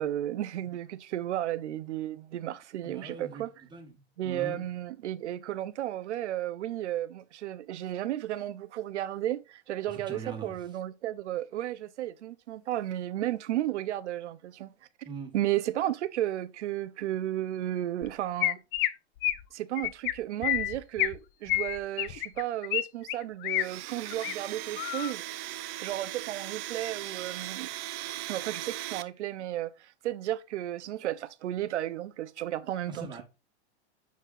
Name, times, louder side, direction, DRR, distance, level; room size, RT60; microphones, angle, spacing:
voice 1, 0.0-3.5 4.2-14.7 15.0-15.1 15.3-18.6 19.5-25.2 25.8-27.7 28.3-33.2, right 13 dB, 85° right, 0.7 m, -33 dB
voice 2, 2.8-4.7 9.9-10.6 15.0-15.3 32.9-33.2, right 3 dB, 15° right, 1.6 m, -42 dB
Chirp tweet, 18.0-18.1 18.4-18.9 19.2-19.4 19.8-20.1 20.4-21.2 21.5-22.8 23.1-23.6 24.1-24.3 24.8-25.1, left 15 dB, 50° left, 0.7 m, -29 dB
Domestic sounds home sounds, 23.5-29.0, right 16 dB, 35° right, 0.5 m, -38 dB
9.3 x 4.3 x 2.6 m
supercardioid pair, 135°, 34 cm